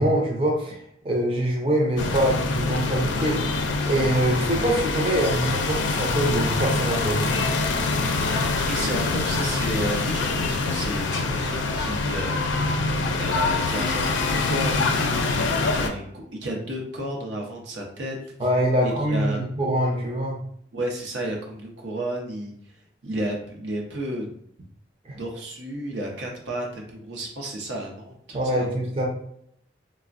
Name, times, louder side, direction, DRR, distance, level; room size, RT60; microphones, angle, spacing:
voice 1, 0.0-7.4 18.4-20.4 25.0-25.2 28.3-29.1, right 1 dB, 30° right, -2 dB, 0.5 m, -24 dB
sound 1, 2.0-15.9, left 3 dB, 90° left, 0.4 m, -25 dB
voice 2, 8.6-12.4 13.1-14.2 14.5-14.9 15.3-18.2 18.8-19.4 20.7-22.5 23.0-24.3 25.1-28.7, right 1 dB, 85° right, 0 dB, 0.6 m, -32 dB
3.3 x 2.0 x 2.4 m, 0.68 s
head